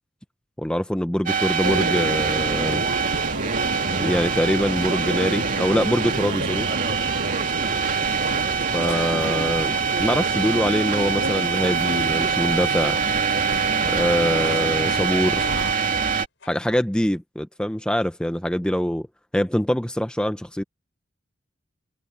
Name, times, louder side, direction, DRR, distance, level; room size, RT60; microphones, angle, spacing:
voice 1, 0.6-2.8 4.0-6.7 8.7-9.7 10.0-13.0 13.9-15.4 16.4-19.1 19.3-20.6, equal, 5° left, 0.7 m, -24 dB
sound 1, 1.3-16.3, right 5 dB, 45° right, 2.7 m, -24 dB
sound 2, 1.6-15.7, right 2 dB, 80° right, 7.3 m, -30 dB
sound 3, 1.7-2.1 2.7-3.1 3.6-3.9 4.6-5.1 5.5-5.9 6.4-11.4 13.5-16.1 16.4-16.8, left 3 dB, 75° left, 6.4 m, -42 dB
head